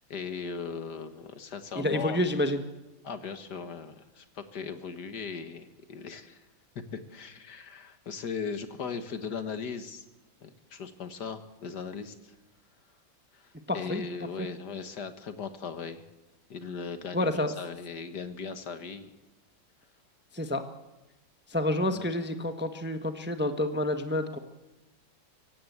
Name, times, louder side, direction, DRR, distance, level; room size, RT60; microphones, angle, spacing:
voice 1, 0.1-2.2 3.0-6.4 6.9-10.1 10.4-12.3 13.3-16.0 16.5-19.1 21.9-22.1, left 5 dB, 60° left, 9 dB, 1.9 m, -38 dB
voice 2, 1.7-2.6 13.7-14.0 14.4-14.5 17.1-17.5 20.3-20.6 21.5-24.4, left 1 dB, 5° right, 7 dB, 1.0 m, -29 dB
24.5 x 15.5 x 8.0 m, 1.0 s
omnidirectional pair, 2.1 m